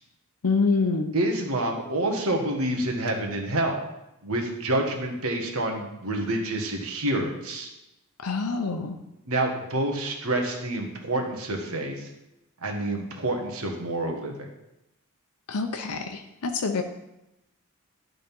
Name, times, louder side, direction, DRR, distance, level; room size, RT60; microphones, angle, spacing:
voice 1, 0.4-1.1 8.2-9.0 15.5-16.8, left 4 dB, 80° left, 6 dB, 0.7 m, -26 dB
voice 2, 1.1-3.8 4.2-7.7 9.2-12.1 12.6-14.3, right 1 dB, 65° right, 2 dB, 1.5 m, -28 dB
11.0 x 3.9 x 5.5 m, 0.91 s
head